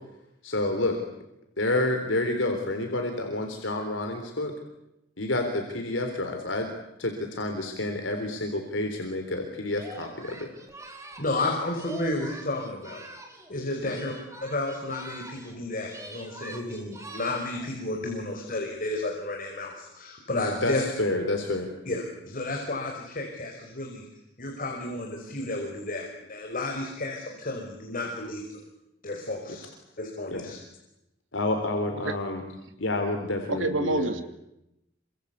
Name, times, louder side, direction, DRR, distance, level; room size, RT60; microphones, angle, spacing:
voice 1, 0.4-1.0 1.6-4.5 5.2-6.7 7.0-10.5 13.8-14.0 20.6-21.7 30.3-30.6 31.3-32.4 32.8-34.2, left 2 dB, 80° left, 4 dB, 3.8 m, -29 dB
Singing, 9.7-13.5 13.8-15.6 15.8-17.7, right 1 dB, 15° right, 4.5 m, -44 dB
voice 2, 11.2-14.1 14.4-20.8 21.8-24.1 24.4-28.6 29.0-29.7 30.0-30.6, left 2 dB, 45° left, 1 dB, 5.1 m, -32 dB
voice 3, 33.5-34.2, right 2 dB, 90° right, 8 dB, 2.9 m, -27 dB
28.0 x 25.5 x 8.4 m, 0.86 s
head